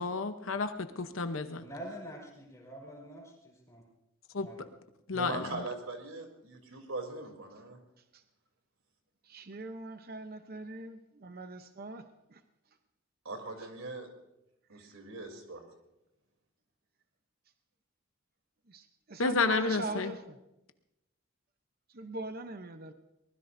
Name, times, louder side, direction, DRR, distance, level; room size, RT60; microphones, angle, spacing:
voice 1, 0.0-1.6 4.3-4.5 5.1-5.6 19.2-20.1, left 4 dB, 70° left, 8 dB, 0.9 m, -31 dB
voice 2, 1.6-3.8 4.4-4.7, right 1 dB, 15° left, -2 dB, 4.8 m, -46 dB
voice 3, 5.1-7.8 13.2-14.1 14.7-15.6, right 2 dB, 90° right, 4 dB, 3.2 m, -41 dB
voice 4, 9.2-12.4 14.7-14.9 18.7-20.4 21.9-22.9, right 2 dB, 45° right, 8 dB, 0.8 m, -41 dB
23.5 x 19.5 x 2.7 m, 0.90 s
head